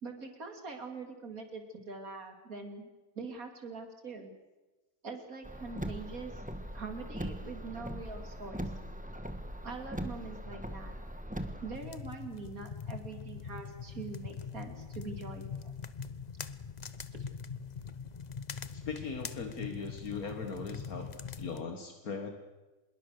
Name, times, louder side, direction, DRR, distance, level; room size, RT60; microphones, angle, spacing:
voice 1, 0.0-2.9 3.1-4.3 5.0-6.3 6.7-8.7 9.6-11.0 11.6-15.7, right 4 dB, 70° right, 5 dB, 3.3 m, -43 dB
Car, 5.4-11.8, equal, 5° right, 1.4 m, -40 dB
sound 1, 11.7-21.6, left 6 dB, 35° left, 0.7 m, -42 dB
voice 2, 18.7-21.1 21.4-22.3, left 5 dB, 75° left, 5 dB, 2.1 m, -39 dB
25.0 x 21.5 x 6.7 m, 1.1 s
omnidirectional pair, 1.6 m